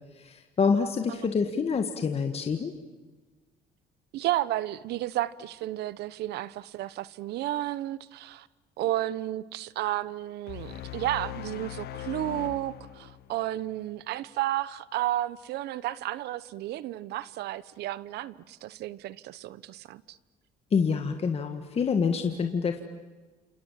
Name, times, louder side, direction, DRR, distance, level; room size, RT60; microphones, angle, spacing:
voice 1, 0.2-2.7 20.7-22.8, left 5 dB, 35° left, 6 dB, 1.8 m, -27 dB
voice 2, 4.1-8.5 8.8-20.2, right 14 dB, 80° right, 18 dB, 1.0 m, -32 dB
sound 1, 10.5-13.8, left 12 dB, 75° left, 1.2 m, -40 dB
28.5 x 27.5 x 7.5 m, 1.3 s
cardioid pair, 110°, 17 cm